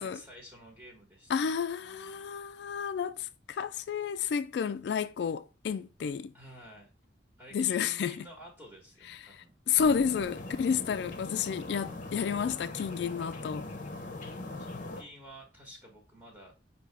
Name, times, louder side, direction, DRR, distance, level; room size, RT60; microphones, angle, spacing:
voice 1, 0.0-1.5 1.8-2.6 6.3-6.9 7.4-9.5 10.5-11.0 14.6-16.5, equal, 10° right, 1.1 m, -52 dB
voice 2, 1.3-6.3 7.5-8.3 9.7-13.7, left 7 dB, 65° left, 0.3 m, -31 dB
sound 1, 9.8-15.0, left 2 dB, 45° left, 0.7 m, -41 dB
5.5 x 2.8 x 3.3 m
head